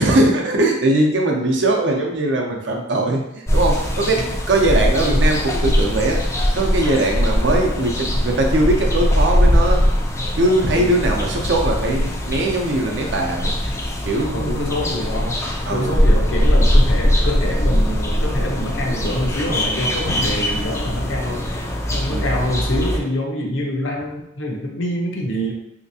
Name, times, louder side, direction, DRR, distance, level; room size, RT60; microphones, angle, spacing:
voice 1, 0.0-6.2 6.5-9.8 10.4-13.5 14.0-14.8 15.7-16.1 22.1-22.4, right 2 dB, 65° right, 1 dB, 0.6 m, -20 dB
sound 1, 3.5-23.0, equal, 15° left, 0.3 m, -20 dB
voice 2, 14.3-25.5, left 1 dB, 80° left, 0 dB, 0.7 m, -26 dB
3.3 x 2.8 x 2.7 m, 0.82 s
head